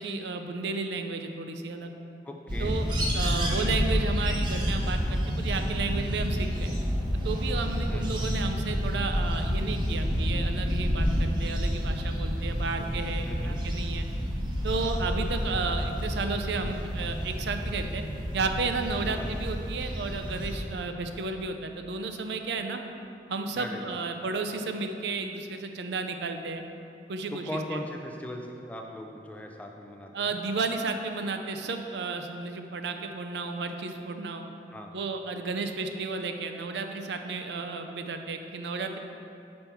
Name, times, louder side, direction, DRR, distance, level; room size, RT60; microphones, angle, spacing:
voice 1, 0.0-1.9 2.6-2.8 3.1-6.7 7.2-14.1 14.6-18.0 18.3-22.8 23.3-26.6 27.1-27.8 30.1-34.5 34.9-39.0, right 4 dB, 70° right, 6 dB, 0.4 m, -33 dB
voice 2, 2.2-2.8 7.9-8.1 13.2-13.6 19.0-19.3 23.6-24.0 27.3-30.4 34.7-34.9, left 1 dB, 10° left, 2 dB, 0.3 m, -39 dB
sound 1, 2.5-20.7, equal, 25° right, 0.8 m, -29 dB
5.7 x 5.3 x 4.5 m, 2.7 s
head